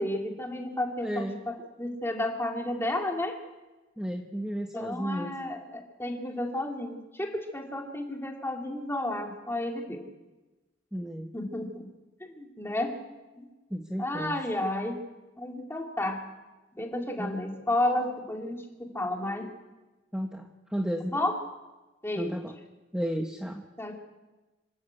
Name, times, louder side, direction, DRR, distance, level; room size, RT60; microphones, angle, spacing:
voice 1, 0.0-3.3 4.7-10.1 11.3-11.9 12.2-13.0 13.4-13.5 14.0-15.0 15.4-16.2 16.7-19.5 21.1-21.3 22.0-22.4 23.8-24.0, left 1 dB, 15° left, 1 dB, 2.8 m, -32 dB
voice 2, 1.0-1.4 4.0-5.3 10.9-11.3 13.7-14.4 16.9-17.4 20.1-21.2 22.2-22.6 22.9-23.6, equal, 5° right, 3 dB, 1.1 m, -33 dB
26.0 x 12.5 x 8.3 m, 1.1 s
head